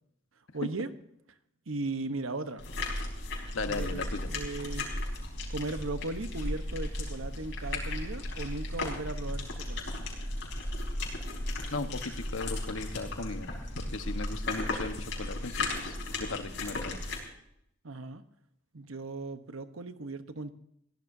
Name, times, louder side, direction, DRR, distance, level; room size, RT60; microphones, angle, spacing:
voice 1, 0.5-0.9 1.7-2.6 3.6-4.9 5.5-9.8 17.8-18.2 18.7-20.5, right 2 dB, 90° right, 9 dB, 1.1 m, -37 dB
sound 1, 2.6-17.2, left 2 dB, 60° left, 4.9 m, -35 dB
voice 2, 3.5-4.3 11.7-13.5 13.8-17.0, left 3 dB, 85° left, 8 dB, 1.2 m, -37 dB
21.5 x 17.0 x 2.7 m, 0.76 s
head